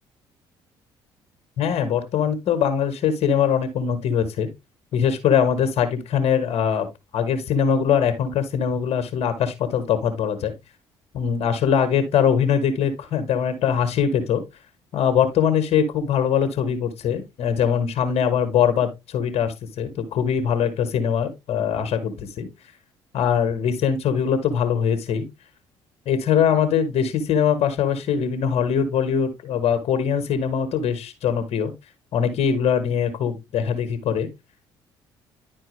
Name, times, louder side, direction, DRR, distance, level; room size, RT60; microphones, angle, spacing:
voice 1, 1.6-4.5 4.9-6.9 7.1-10.5 11.1-14.4 14.9-22.5 23.1-25.3 26.0-31.7 32.1-34.3, left 7 dB, 65° left, 8 dB, 1.3 m, -22 dB
10.5 x 4.3 x 3.1 m, 0.22 s
supercardioid pair, 60°, 11 cm